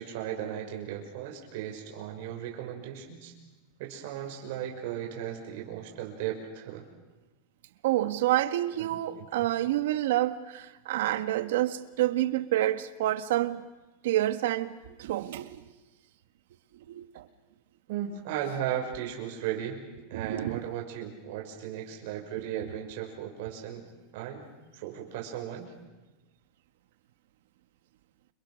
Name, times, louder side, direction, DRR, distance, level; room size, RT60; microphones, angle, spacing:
voice 1, 0.0-3.3 3.8-6.8 8.8-9.5 17.9-19.8 20.1-23.8 24.1-24.5 24.7-25.7, right 10 dB, 55° right, 6.5 m, -36 dB
voice 2, 7.8-13.6 14.0-15.6 16.9-17.3 20.2-20.6, right 14 dB, 70° right, 1.6 m, -28 dB
29.5 x 28.0 x 6.5 m
supercardioid pair, 175°, 0 cm